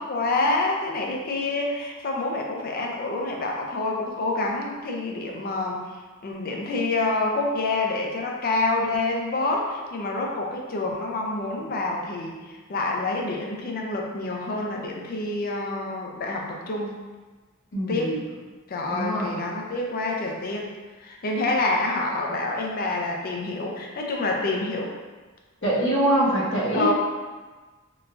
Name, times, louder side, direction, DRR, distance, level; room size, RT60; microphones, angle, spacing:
voice 1, 0.0-5.8 6.2-17.0 17.9-18.2 18.7-20.7 21.0-24.9 26.7-26.9, left 2 dB, 45° left, 0 dB, 0.4 m, -27 dB
voice 2, 17.7-18.2 18.9-19.4 25.6-26.9, right 1 dB, 60° left, -8 dB, 1.0 m, -24 dB
3.8 x 2.3 x 2.5 m, 1.3 s
head